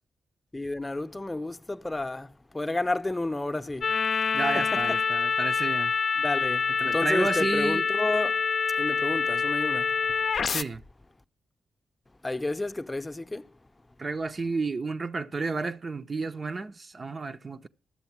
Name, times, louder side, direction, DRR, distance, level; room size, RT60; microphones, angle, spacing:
voice 1, 0.5-3.9 4.5-4.8 6.2-6.7 6.9-8.4 8.8-9.9 12.2-13.5, left 2 dB, 20° left, 0.7 m, -31 dB
sound 1, 3.8-10.6, left 5 dB, 60° left, 0.5 m, -26 dB
voice 2, 4.3-5.9 6.8-7.9 10.5-10.8 14.0-17.7, right 3 dB, 45° right, 0.7 m, -31 dB
12.5 x 7.7 x 5.8 m
hypercardioid pair, 40°, 0 cm